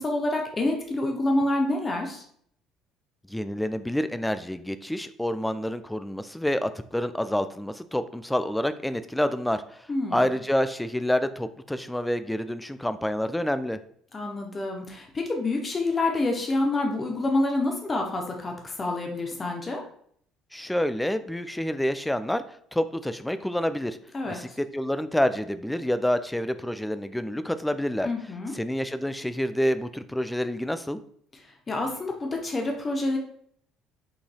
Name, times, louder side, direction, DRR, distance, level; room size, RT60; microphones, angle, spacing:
voice 1, 0.0-2.2 9.9-10.2 14.1-19.8 24.1-24.4 28.0-28.5 31.7-33.2, left 2 dB, 25° left, 2 dB, 0.9 m, -27 dB
voice 2, 3.3-9.6 10.1-13.8 20.5-22.4 22.7-24.0 24.3-28.1 28.6-31.0, left 1 dB, 5° left, 11 dB, 0.3 m, -28 dB
5.6 x 4.0 x 2.3 m, 0.63 s
figure-of-eight pair, 55°, 0 cm